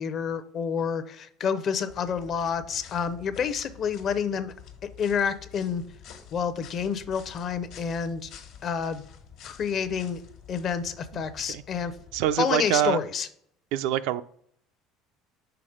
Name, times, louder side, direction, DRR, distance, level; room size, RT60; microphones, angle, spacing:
voice 1, 0.0-4.5 5.0-5.8 6.3-8.3 8.6-9.0 9.4-10.2 10.5-11.9 12.4-13.3, left 7 dB, 45° left, 11 dB, 0.6 m, -29 dB
fl excuse leavesinfall, 1.9-12.4, left 7 dB, 70° left, 1.3 m, -49 dB
voice 2, 12.1-13.0 13.7-14.2, right 11 dB, 80° right, 12 dB, 0.3 m, -25 dB
5.8 x 3.8 x 5.0 m, 0.65 s
supercardioid pair, 115°, 0 cm